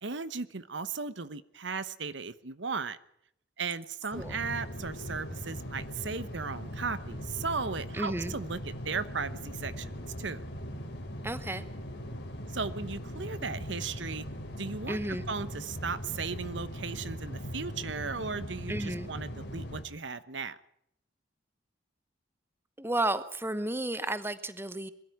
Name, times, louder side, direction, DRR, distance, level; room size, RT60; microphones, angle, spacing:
voice 1, 0.0-3.0 3.6-10.4 12.5-14.2 14.6-20.6, right 5 dB, 65° right, 14 dB, 1.0 m, -36 dB
sound 1, 4.1-19.8, equal, 60° left, 3.3 m, -40 dB
voice 2, 7.9-8.3 11.2-11.6 14.9-15.2 18.7-19.1 22.8-24.9, right 1 dB, 10° right, 13 dB, 1.0 m, -32 dB
22.0 x 13.0 x 9.4 m, 0.73 s
head